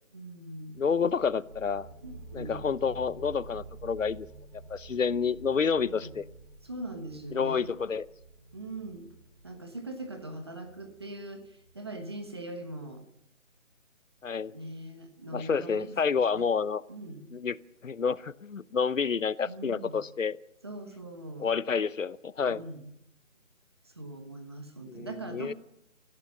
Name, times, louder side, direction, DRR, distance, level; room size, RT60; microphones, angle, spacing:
voice 1, 0.1-0.8 2.0-2.7 5.8-6.2 6.6-7.7 8.5-9.1 9.4-13.0 14.5-15.9 16.3-16.5 16.9-17.3 19.4-20.0 20.6-21.5 22.4-22.9 23.8-25.5, right 1 dB, 20° right, 6 dB, 1.2 m, -41 dB
sound 1, 0.7-12.1, right 3 dB, 40° right, 6.5 m, -49 dB
voice 2, 0.8-1.9 2.3-4.3 4.5-6.2 7.3-8.1 14.2-14.5 15.3-16.8 17.3-17.6 17.8-20.4 21.4-22.6 24.9-25.5, left 6 dB, 70° left, 18 dB, 0.9 m, -29 dB
29.0 x 16.0 x 6.2 m, 0.81 s
figure-of-eight pair, 170°, 41 cm